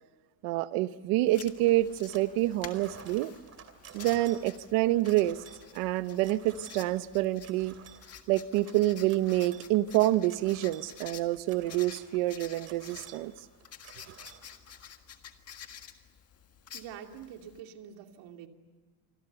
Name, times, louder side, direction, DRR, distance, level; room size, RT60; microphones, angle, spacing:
voice 1, 0.4-3.3 3.9-5.4 5.7-7.7 8.3-13.3, right 16 dB, 80° right, 13 dB, 1.1 m, -27 dB
Writing, 1.3-17.6, left 8 dB, 30° left, 1.6 m, -50 dB
sound 1, 1.5-2.3 2.6-15.0, right 7 dB, 30° right, 3.0 m, -53 dB
voice 2, 16.7-18.5, right 9 dB, 65° right, 4 dB, 2.8 m, -46 dB
27.5 x 25.5 x 6.9 m, 1.4 s
cardioid pair, 180°, 49 cm